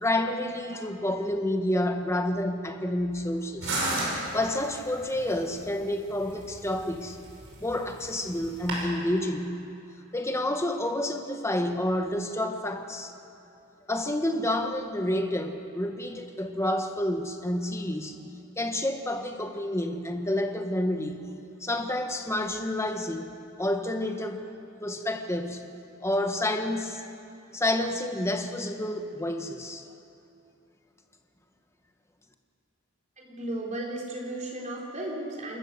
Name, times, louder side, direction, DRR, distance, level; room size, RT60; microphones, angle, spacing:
voice 1, 0.0-3.7 4.3-7.2 7.6-9.5 10.1-13.1 13.9-18.1 18.6-21.2 21.6-23.3 23.6-24.5 24.8-25.6 26.0-27.0 27.5-29.8, left 1 dB, 10° left, 5 dB, 1.2 m, -29 dB
sound 1, 3.6-8.8, right 2 dB, 60° right, 6.1 m, -35 dB
voice 2, 33.2-35.6, right 1 dB, 35° right, -3 dB, 4.1 m, -35 dB
28.0 x 14.0 x 6.8 m, 2.8 s
head